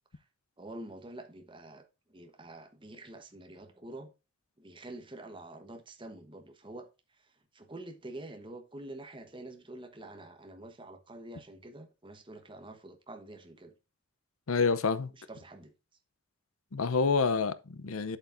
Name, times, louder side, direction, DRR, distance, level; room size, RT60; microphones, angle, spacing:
voice 1, 0.6-4.1 4.6-6.9 7.2-13.7 15.2-15.7, right 1 dB, 25° right, 1.2 m, -47 dB
voice 2, 14.5-15.1 16.7-18.2, left 4 dB, 80° left, 0.7 m, -28 dB
8.3 x 8.0 x 2.6 m
head